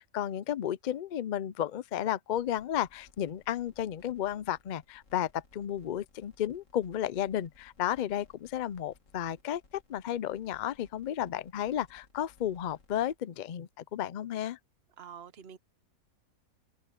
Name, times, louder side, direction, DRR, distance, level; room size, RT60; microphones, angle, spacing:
voice 1, 0.0-9.6 9.9-14.6, left 11 dB, 85° left, 0.4 m, -33 dB
sound 1, 2.3-13.2, left 4 dB, 60° left, 2.1 m, -63 dB
voice 2, 15.0-15.6, right 7 dB, 50° right, 1.1 m, -46 dB
omnidirectional pair, 1.5 m